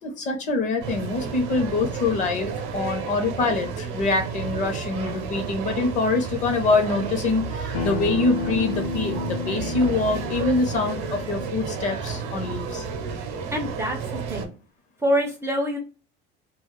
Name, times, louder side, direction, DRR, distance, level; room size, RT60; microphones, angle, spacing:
voice 1, 0.0-12.8, left 3 dB, 35° left, 4 dB, 0.7 m, -25 dB
sound 1, 0.8-14.5, right 5 dB, 85° right, 0.7 m, -32 dB
Acoustic guitar, 7.7-12.9, left 5 dB, 80° left, 0.7 m, -33 dB
voice 2, 13.5-14.0 14.3-14.5 15.0-15.8, equal, 15° right, 2 dB, 0.3 m, -25 dB
2.3 x 2.0 x 2.9 m, 0.34 s
cardioid pair, 160°, 20 cm